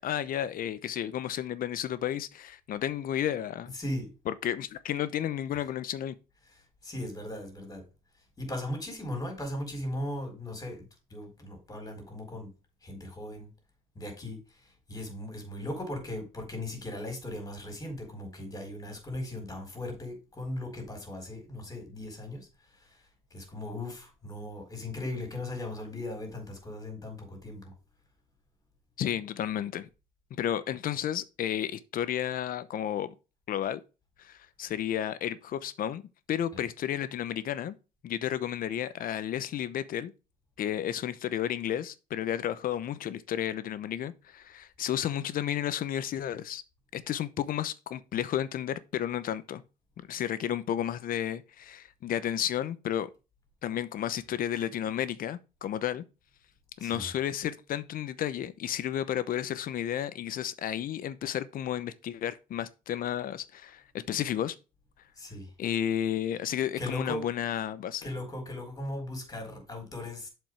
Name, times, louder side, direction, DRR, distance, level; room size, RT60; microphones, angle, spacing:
voice 1, 0.0-3.7 4.3-6.1 29.0-29.9 30.3-33.1 33.5-33.8 34.2-36.0 36.3-37.8 38.0-40.1 40.6-46.6 46.9-49.6 50.1-53.1 53.6-56.0 56.8-64.5 65.6-68.1, left 10 dB, 55° left, 0.8 m, -32 dB
voice 2, 3.7-4.1 5.5-5.7 6.8-7.9 8.4-12.5 12.8-13.5 13.9-23.1 23.3-27.7 36.5-36.6 56.8-57.1 65.2-65.5 66.8-67.3 68.0-70.3, left 1 dB, 20° left, 4.2 m, -38 dB
7.4 x 5.2 x 4.7 m
cardioid pair, 110°, 17 cm